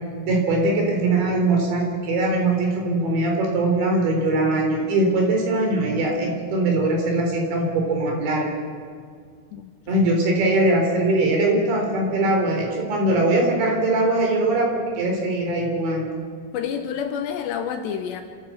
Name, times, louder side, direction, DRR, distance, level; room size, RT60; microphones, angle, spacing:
voice 1, 0.3-8.6 9.9-16.1, right 2 dB, 65° right, 1 dB, 6.0 m, -21 dB
voice 2, 9.5-10.0 16.5-18.2, left 8 dB, 75° left, 6 dB, 2.8 m, -29 dB
29.0 x 14.0 x 7.6 m, 2.1 s
omnidirectional pair, 5.6 m